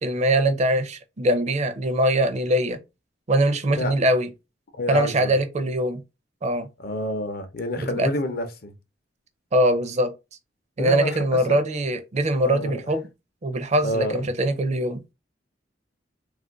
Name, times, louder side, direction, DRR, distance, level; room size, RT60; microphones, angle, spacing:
voice 1, 0.0-2.8 3.3-4.3 4.9-6.0 6.4-6.7 7.9-8.1 9.5-10.1 10.8-13.0 13.4-15.0, right 1 dB, 40° right, 0.5 m, -22 dB
voice 2, 4.8-5.3 6.8-8.7 10.8-11.6 12.4-12.8 13.8-14.3, left 1 dB, 55° left, 0.6 m, -28 dB
2.5 x 2.4 x 3.7 m
head